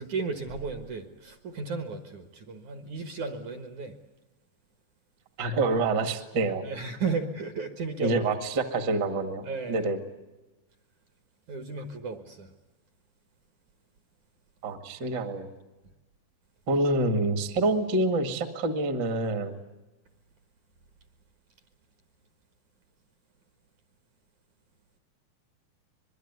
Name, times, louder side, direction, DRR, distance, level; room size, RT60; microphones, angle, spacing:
voice 1, 0.0-3.9 6.6-8.2 9.5-9.9 11.5-12.5, right 4 dB, 60° right, 6 dB, 2.3 m, -34 dB
voice 2, 5.4-6.6 7.0-7.1 8.0-10.0 14.6-15.5 16.7-19.6, right 2 dB, 40° right, 7 dB, 1.5 m, -27 dB
25.0 x 22.0 x 9.5 m, 1.1 s
omnidirectional pair, 5.0 m